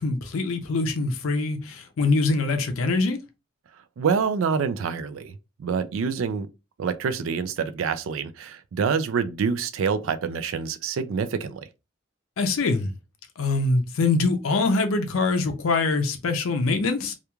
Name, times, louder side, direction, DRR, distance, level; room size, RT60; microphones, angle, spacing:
voice 1, 0.0-3.2 12.4-12.9 13.4-17.1, left 3 dB, 80° left, 0.5 m, -24 dB
voice 2, 4.0-5.3 5.6-6.5 6.8-11.7, right 6 dB, 70° right, 0.3 m, -26 dB
2.9 x 2.3 x 2.2 m
head